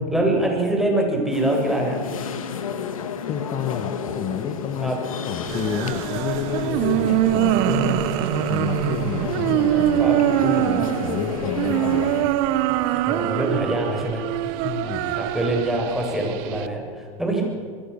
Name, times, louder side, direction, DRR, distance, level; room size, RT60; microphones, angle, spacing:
voice 1, 0.0-2.0 4.8-5.0 9.9-10.2 13.0-14.6 15.1-17.4, right 1 dB, ahead, 0 dB, 8.0 m, -24 dB
sound 1, 1.3-12.2, left 6 dB, 80° left, 2.8 m, -31 dB
voice 2, 3.0-4.9 5.2-8.1 8.5-10.1 10.4-12.4 14.6-15.2, left 8 dB, 35° left, 7 dB, 1.9 m, -30 dB
sound 2, 5.4-16.7, right 14 dB, 55° right, 1.5 m, -23 dB
28.0 x 21.5 x 7.3 m, 2.2 s
hypercardioid pair, 105°, 17 cm